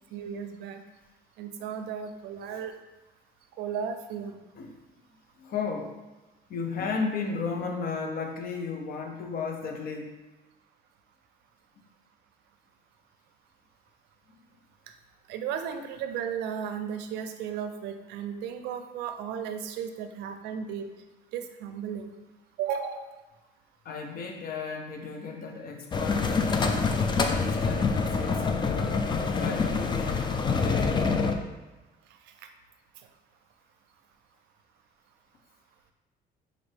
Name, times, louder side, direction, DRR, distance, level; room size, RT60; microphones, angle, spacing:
voice 1, 0.1-0.8 1.4-2.7 3.6-4.4 15.3-20.9 21.3-22.1 22.6-23.1, right 7 dB, 85° right, 7 dB, 0.5 m, -34 dB
voice 2, 5.4-6.0 6.5-10.2 23.8-29.1 29.3-31.0, left 4 dB, 60° left, 3 dB, 0.7 m, -35 dB
Speedboat Outboard Motors Tidore Indonesia, 25.9-31.4, left 4 dB, 25° left, 0.4 m, -26 dB
5.2 x 2.6 x 3.3 m, 1.1 s
cardioid pair, 110°, 17 cm